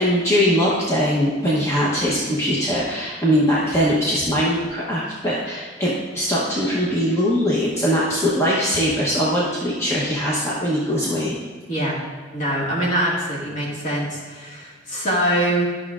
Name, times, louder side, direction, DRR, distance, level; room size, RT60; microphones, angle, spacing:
voice 1, 0.0-11.3, equal, 15° left, -6 dB, 0.8 m, -21 dB
voice 2, 12.3-15.7, right 1 dB, 40° left, -5 dB, 1.8 m, -23 dB
11.0 x 6.1 x 2.4 m, 1.4 s
head